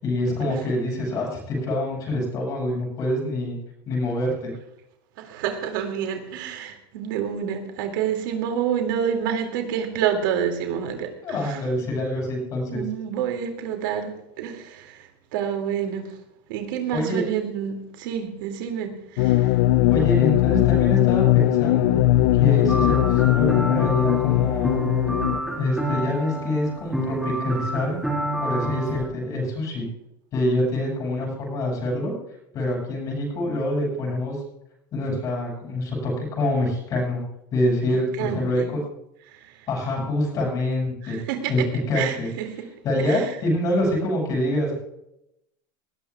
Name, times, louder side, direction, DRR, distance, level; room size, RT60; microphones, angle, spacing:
voice 1, 0.0-3.6 3.9-4.5 11.2-12.8 16.9-17.2 19.9-22.0 22.4-24.8 25.6-28.0 28.4-29.9 30.3-32.1 32.5-34.4 34.9-37.2 37.5-38.8 39.7-41.2 41.5-41.6 41.9-42.3 42.8-44.7, left 1 dB, 30° left, -2 dB, 7.0 m, -25 dB
voice 2, 5.2-11.6 12.7-16.1 16.5-19.6 37.8-38.7 39.2-39.7 41.0-41.7 41.9-42.5 43.0-43.3, right 8 dB, 65° right, 4 dB, 2.6 m, -28 dB
sound 1, 19.2-25.4, left 15 dB, 55° left, 0.4 m, -19 dB
sound 2, 22.7-29.1, right 2 dB, ahead, 2.3 m, -29 dB
20.0 x 17.5 x 2.4 m, 0.84 s
supercardioid pair, 175°, 12 cm